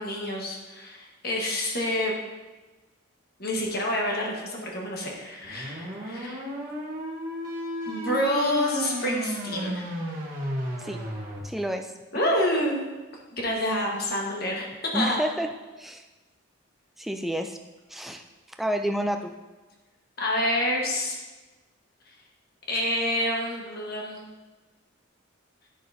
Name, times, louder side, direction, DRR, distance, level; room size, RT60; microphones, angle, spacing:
voice 1, 0.0-2.1 3.4-6.4 7.9-9.9 12.1-12.8 13.3-15.2 20.2-21.2 22.7-24.3, left 1 dB, 45° left, -2 dB, 1.4 m, -28 dB
sound 1, 5.4-11.4, equal, 40° right, 1.3 m, -34 dB
voice 2, 11.4-11.9 12.2-12.3 14.9-15.5 15.8-16.0 17.0-17.6 17.9-18.2 18.6-19.3, equal, ahead, 5 dB, 0.3 m, -29 dB
10.0 x 6.3 x 2.7 m, 1.2 s
head